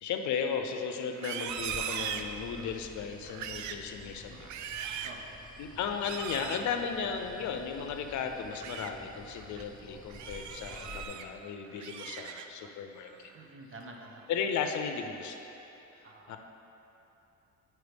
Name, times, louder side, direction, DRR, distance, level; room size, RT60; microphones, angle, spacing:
voice 1, 0.0-4.5 4.9-5.0 5.6-13.3 14.3-15.4 15.9-16.4, left 6 dB, 70° left, 5 dB, 0.6 m, -35 dB
Livestock farm animals working animals, 1.1-2.8 3.2-3.9 4.3-5.2 6.0-6.7 8.3-8.9 9.4-9.6 10.1-11.3 11.6-12.7 13.1-13.4 13.8-14.3, right 8 dB, 70° right, 0.4 m, -39 dB
sound 1, 1.5-11.0, left 2 dB, 15° left, 0.6 m, -51 dB
voice 2, 5.0-5.4 13.3-14.2 16.0-16.4, right 2 dB, 45° right, 1 dB, 0.9 m, -48 dB
9.4 x 4.6 x 3.4 m, 2.9 s
cardioid pair, 90°, 30 cm